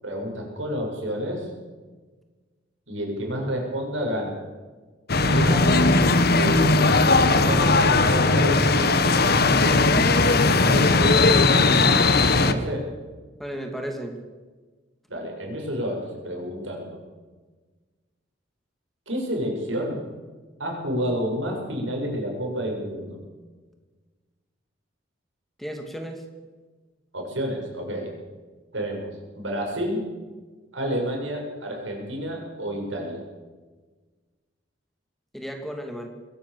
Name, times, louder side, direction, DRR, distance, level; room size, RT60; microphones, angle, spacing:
voice 1, 0.0-1.5 2.9-4.4 5.2-5.9 6.3-6.9 7.2-9.1 9.6-11.6 12.3-12.9 15.1-17.0 19.1-20.0 20.6-23.2 27.1-28.1 28.7-30.1 30.7-33.2, equal, 85° right, 1 dB, 7.3 m, -30 dB
sound 1, 5.1-12.5, left 3 dB, 55° left, 1.5 m, -18 dB
voice 2, 13.4-14.2 25.6-26.2 35.3-36.1, equal, ahead, 4 dB, 2.6 m, -34 dB
22.0 x 17.5 x 7.0 m, 1.3 s
head